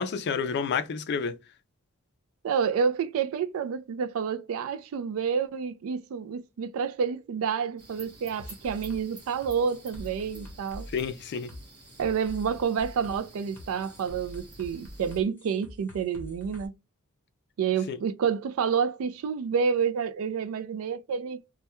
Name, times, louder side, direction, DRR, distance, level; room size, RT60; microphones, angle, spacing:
voice 1, 0.0-1.3 10.9-11.5 17.9-18.0, left 6 dB, 50° left, 0.4 m, -29 dB
voice 2, 2.4-10.9 12.0-16.7 17.6-21.4, right 6 dB, 65° right, 0.3 m, -29 dB
sound 1, 7.8-15.2, right 2 dB, 50° right, 0.9 m, -51 dB
sound 2, 8.4-16.7, equal, 10° left, 0.8 m, -45 dB
2.2 x 2.1 x 2.8 m
head